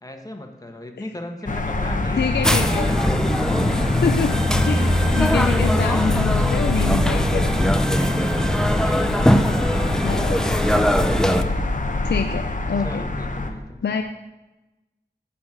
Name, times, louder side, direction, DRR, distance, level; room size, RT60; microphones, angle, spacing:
voice 1, 0.0-2.3 2.6-3.5 7.9-10.3 12.8-13.8, left 1 dB, 20° left, 4 dB, 1.4 m, -37 dB
sound 1, 1.5-13.5, left 2 dB, 45° left, 1.0 m, -24 dB
voice 2, 2.1-2.9 3.6-4.4 4.6-7.7 10.0-10.4 12.0-12.9 13.8-14.0, left 6 dB, 70° left, 6 dB, 0.5 m, -26 dB
sound 2, 2.4-11.4, equal, 5° left, 0.6 m, -21 dB
9.5 x 4.3 x 7.6 m, 1.1 s
cardioid pair, 50°, 18 cm